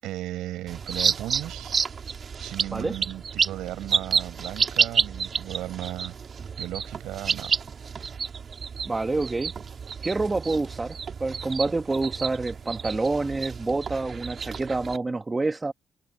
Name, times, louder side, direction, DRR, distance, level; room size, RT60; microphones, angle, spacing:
voice 1, 0.0-1.7 2.4-6.1 6.6-7.6, right 14 dB, 90° right, 7.1 m, -36 dB
sound 1, 0.7-15.0, right 6 dB, 45° right, 2.2 m, -30 dB
voice 2, 8.8-9.5 10.0-10.9 11.2-15.7, right 3 dB, 20° right, 1.4 m, -27 dB
cardioid pair, 90°, 0 cm